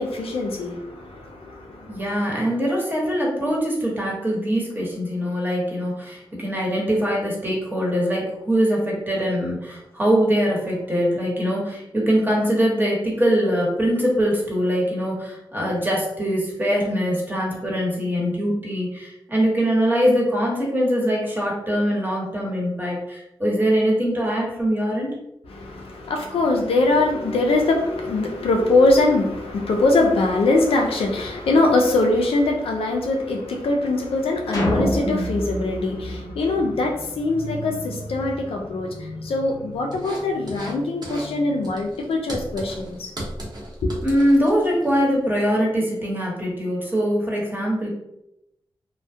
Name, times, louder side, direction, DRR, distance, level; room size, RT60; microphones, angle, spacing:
voice 1, 0.0-2.0 25.5-43.1 43.8-43.9, left 2 dB, 85° left, 0.4 m, -22 dB
voice 2, 1.9-25.1 44.0-47.9, equal, 20° right, 1.1 m, -22 dB
sound 1, 34.5-37.0, equal, 40° left, 0.7 m, -25 dB
sound 2, 39.9-40.8 41.0-41.3 41.6-44.9, right 1 dB, 45° right, 0.8 m, -36 dB
2.2 x 2.1 x 2.6 m
cardioid pair, 45°, 9 cm